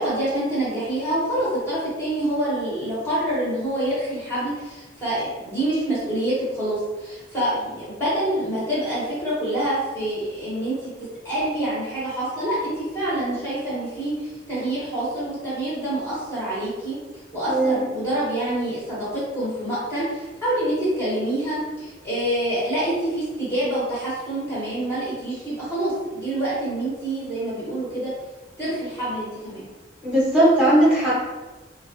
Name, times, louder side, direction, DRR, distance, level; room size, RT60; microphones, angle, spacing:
voice 1, 0.0-10.9 11.2-17.0 17.3-28.1 28.6-29.6, right 1 dB, 15° left, -11 dB, 1.1 m, -26 dB
voice 2, 17.5-17.8 30.0-31.1, right 1 dB, 5° right, -9 dB, 1.2 m, -18 dB
3.6 x 2.3 x 2.6 m, 1.2 s
head